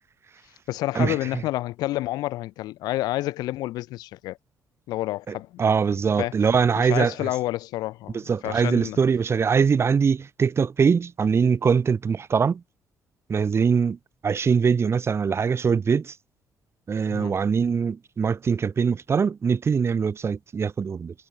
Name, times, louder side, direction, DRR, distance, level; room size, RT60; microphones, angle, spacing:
voice 1, 0.7-4.4 4.9-5.6 6.2-6.4 6.7-9.0 17.1-17.3, left 16 dB, 85° left, 6.9 m, -29 dB
voice 2, 5.3-7.3 8.3-12.6 13.3-14.0 14.2-16.1 16.9-21.1, right 6 dB, 40° right, 6.8 m, -22 dB
cardioid pair, 85°, 7 cm